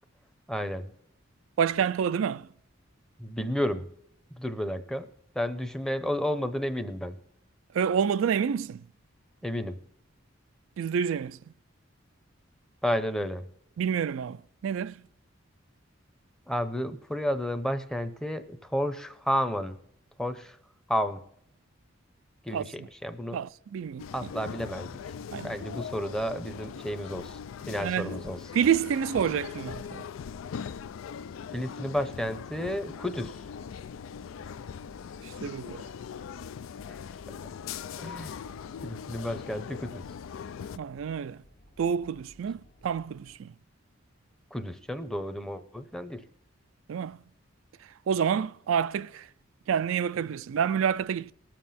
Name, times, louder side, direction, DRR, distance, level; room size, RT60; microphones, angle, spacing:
voice 1, 0.5-0.9 3.2-3.9 4.4-5.1 5.3-7.2 9.4-9.8 12.8-13.4 16.5-19.8 20.2-20.6 20.9-21.2 22.4-23.4 24.1-24.9 25.4-27.4 27.7-28.5 31.5-33.4 36.9-37.0 38.0-38.4 38.8-40.1 44.5-46.2, equal, 5° left, 0.7 m, -31 dB
voice 2, 1.6-2.5 7.7-8.8 10.8-11.4 13.8-15.0 22.5-22.7 23.3-24.0 25.3-25.5 27.8-28.2 28.5-30.0 35.2-35.9 40.8-41.4 41.8-43.5 46.9-47.2 48.1-49.3 49.7-51.3, right 7 dB, 80° right, 0.3 m, -28 dB
sound 1, 24.0-40.8, left 7 dB, 80° left, 0.4 m, -40 dB
sound 2, 32.9-43.4, equal, 50° left, 1.0 m, -57 dB
19.0 x 7.4 x 4.2 m
head